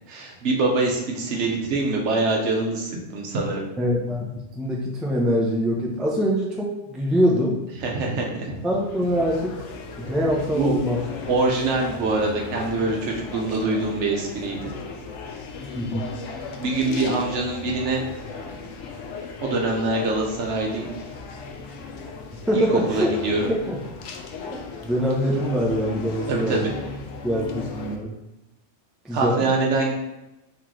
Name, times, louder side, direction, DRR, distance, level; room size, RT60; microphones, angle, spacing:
voice 1, 0.1-3.6 7.8-8.6 10.5-10.8 11.3-14.7 16.6-18.0 19.4-20.9 22.5-23.5 26.3-26.7 29.1-29.9, right 3 dB, 75° right, -1 dB, 1.1 m, -24 dB
voice 2, 3.8-7.6 8.6-9.6 10.0-11.0 15.7-16.1 22.5-23.1 23.7-23.8 24.4-26.7 27.2-28.1 29.0-29.5, equal, ahead, -2 dB, 0.3 m, -24 dB
sound 1, 8.2-28.0, left 4 dB, 80° left, 0.9 m, -36 dB
3.1 x 3.0 x 3.7 m, 0.94 s
omnidirectional pair, 1.2 m